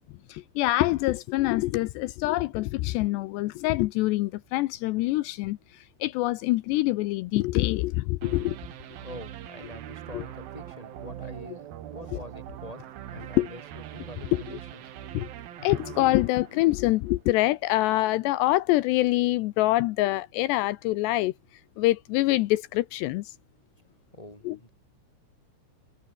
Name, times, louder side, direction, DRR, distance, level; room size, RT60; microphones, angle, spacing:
voice 1, 0.3-8.6 10.1-10.2 13.4-13.5 14.3-14.6 15.1-15.3 15.6-21.3 21.8-23.3 24.4-24.6, left 18 dB, 85° left, 2.5 m, -25 dB
sound 1, 8.2-17.3, right 12 dB, 60° right, 2.8 m, -42 dB
voice 2, 9.0-14.8 24.1-24.7, left 1 dB, 5° left, 7.0 m, -45 dB
omnidirectional pair, 5.7 m